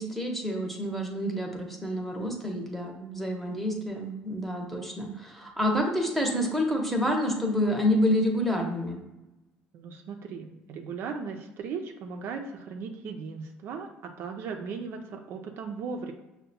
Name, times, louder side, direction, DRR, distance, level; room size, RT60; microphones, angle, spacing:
voice 1, 0.0-9.0, equal, 5° left, 1 dB, 0.8 m, -28 dB
voice 2, 9.7-16.1, right 5 dB, 65° right, 4 dB, 0.4 m, -37 dB
5.5 x 2.1 x 2.7 m, 0.99 s
supercardioid pair, 85°, 4 cm